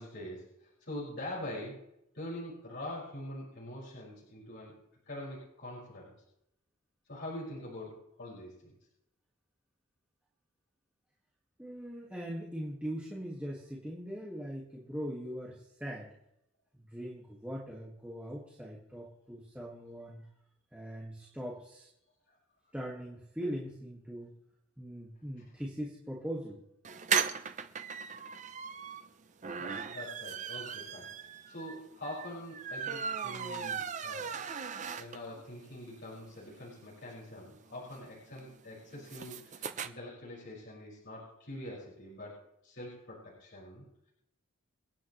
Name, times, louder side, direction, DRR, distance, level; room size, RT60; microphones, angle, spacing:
voice 1, 0.0-1.8 2.1-4.8 5.0-6.1 7.1-8.7 12.1-12.2 22.3-22.4 25.4-25.5 29.6-34.5 35.0-42.4 42.6-43.8, left 1 dB, 55° left, -7 dB, 5.8 m, -44 dB
voice 2, 11.6-16.1 16.8-20.3 20.7-21.9 22.7-24.3 24.8-26.6, equal, 5° right, -4 dB, 1.8 m, -41 dB
sound 1, 26.8-35.4 35.8-35.9 36.1-36.2 36.5-39.9, right 7 dB, 35° right, 0.6 m, -37 dB
28.0 x 9.5 x 3.2 m, 0.80 s
head